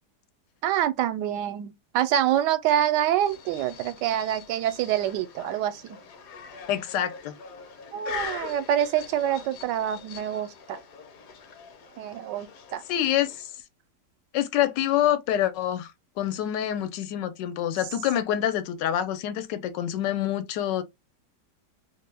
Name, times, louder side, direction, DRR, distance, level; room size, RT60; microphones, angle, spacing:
voice 1, 0.6-6.0 7.9-10.8 12.0-12.8, right 11 dB, 80° right, 1.2 m, -26 dB
sound 1, 3.2-13.6, left 6 dB, 65° left, 1.1 m, -43 dB
voice 2, 6.7-7.3 12.9-13.5 14.3-15.9 16.2-20.8, left 11 dB, 85° left, 1.3 m, -26 dB
3.0 x 2.2 x 3.3 m
omnidirectional pair, 1.9 m